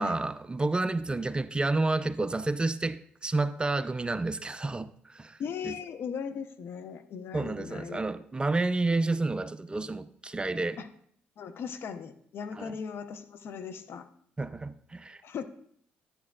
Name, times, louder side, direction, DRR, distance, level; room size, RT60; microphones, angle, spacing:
voice 1, 0.0-5.4 5.6-5.7 7.3-10.8 12.5-12.8 14.4-15.2, right 2 dB, 20° right, 0.4 m, -30 dB
voice 2, 5.4-8.0 10.8-10.9 11.4-14.1 15.2-15.4, left 6 dB, 60° left, 0.7 m, -38 dB
9.6 x 8.3 x 2.3 m
hypercardioid pair, 60°, 4 cm